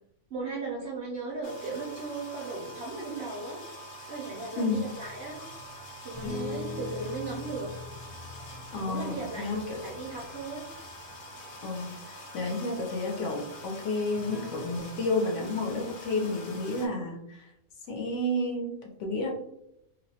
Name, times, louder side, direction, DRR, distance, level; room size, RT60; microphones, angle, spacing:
voice 1, 0.3-3.6 4.1-5.4 6.0-7.7 8.8-10.7, right 3 dB, 65° right, -3 dB, 0.6 m, -37 dB
sound 1, 1.4-16.9, equal, 85° left, 0.4 m, -45 dB
voice 2, 4.5-4.9 8.7-9.8 11.6-17.5 17.9-19.3, left 2 dB, 65° left, 0 dB, 0.8 m, -31 dB
sound 2, 4.7-11.1 11.4-11.8 14.1-15.1, left 3 dB, 30° left, 0.9 m, -43 dB
2.5 x 2.0 x 2.7 m, 0.80 s
omnidirectional pair, 1.5 m